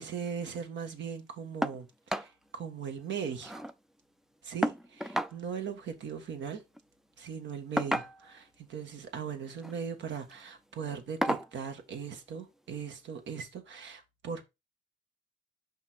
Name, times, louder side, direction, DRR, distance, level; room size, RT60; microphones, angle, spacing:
voice 1, 0.0-3.6 4.4-6.6 7.2-14.4, right 7 dB, 70° right, 1.5 m, -39 dB
sound 1, 1.6-1.8 2.1-2.3 2.7-2.8 3.1-3.7 4.6-5.4 6.6-6.8 7.8-8.4 9.5-9.8 10.2-10.4 11.2-11.5 12.8-12.9 13.4-13.5, equal, ahead, 0.4 m, -32 dB
5.7 x 4.9 x 4.3 m
cardioid pair, 90°, 20 cm